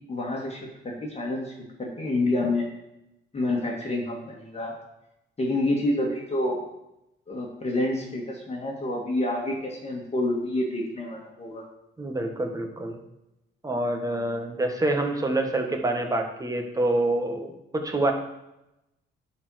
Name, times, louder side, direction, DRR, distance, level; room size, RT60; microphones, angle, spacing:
voice 1, 0.1-1.5 1.8-2.7 3.3-4.7 5.4-6.6 7.3-11.7, left 1 dB, 30° left, -1 dB, 2.0 m, -28 dB
voice 2, 12.0-13.0 13.6-18.1, right 2 dB, 15° right, 3 dB, 1.6 m, -26 dB
9.8 x 4.6 x 6.4 m, 0.89 s
cardioid pair, 90°, 20 cm